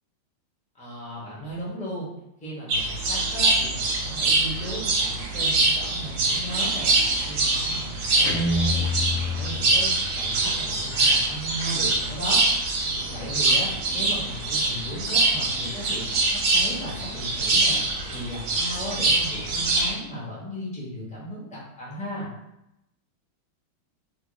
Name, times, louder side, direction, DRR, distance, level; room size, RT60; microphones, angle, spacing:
voice 1, 0.7-2.1 2.4-22.3, equal, 10° left, -6 dB, 0.5 m, -36 dB
sound 1, 2.7-19.9, right 2 dB, 65° right, 1.0 m, -24 dB
Guitar, 8.2-10.3, left 2 dB, 75° left, 1.2 m, -27 dB
2.9 x 2.7 x 3.9 m, 0.86 s
omnidirectional pair, 2.2 m